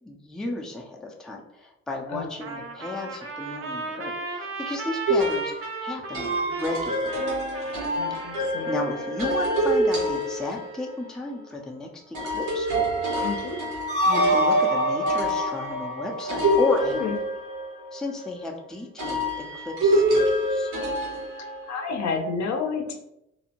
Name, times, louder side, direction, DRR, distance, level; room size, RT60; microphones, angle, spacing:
voice 1, 0.0-7.2 8.2-13.2 14.1-17.1 17.9-20.7, left 2 dB, ahead, 0 dB, 0.4 m, -33 dB
Trumpet, 2.4-9.4, right 3 dB, 45° right, 0.6 m, -35 dB
sound 1, 5.1-10.9 12.1-18.2 19.0-22.0, equal, 85° right, 1.2 m, -27 dB
voice 2, 7.9-8.7 13.2-13.6 16.9-17.2 21.7-23.0, left 5 dB, 65° left, 4 dB, 0.6 m, -30 dB
sound 2, 13.9-17.0, right 1 dB, 35° left, 0.9 m, -24 dB
2.6 x 2.0 x 2.8 m, 0.82 s
cardioid pair, 90°, 30 cm